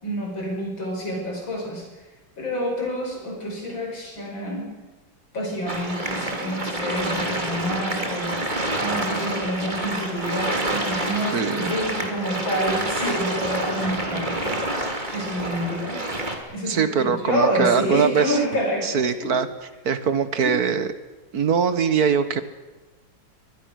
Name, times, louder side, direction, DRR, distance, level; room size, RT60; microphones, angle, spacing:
voice 1, 0.0-1.9 2.4-4.7 5.3-8.4 8.8-14.6 15.1-16.1 16.5-19.4 20.4-20.5, equal, 85° left, 0 dB, 6.7 m, -28 dB
sound 1, 5.7-16.4, right 1 dB, 25° right, 2.8 m, -28 dB
voice 2, 11.3-11.8 16.7-18.4 18.8-19.5 19.9-20.9 21.3-22.4, right 6 dB, 55° right, 11 dB, 1.7 m, -22 dB
23.0 x 20.5 x 6.5 m, 1.2 s
omnidirectional pair, 2.1 m